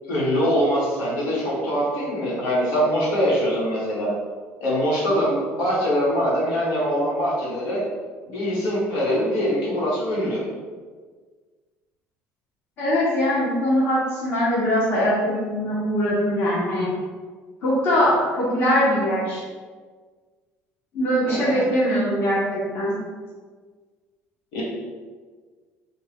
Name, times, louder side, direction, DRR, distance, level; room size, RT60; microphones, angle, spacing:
voice 1, 0.1-4.1 4.6-7.8 8.2-10.4 21.3-21.7 24.5-24.6, equal, 80° left, -6 dB, 1.4 m, -23 dB
voice 2, 12.8-16.9 17.6-19.4 20.9-22.9, equal, 40° left, -7 dB, 0.9 m, -22 dB
4.3 x 2.2 x 3.4 m, 1.5 s
cardioid pair, 170°, 5 cm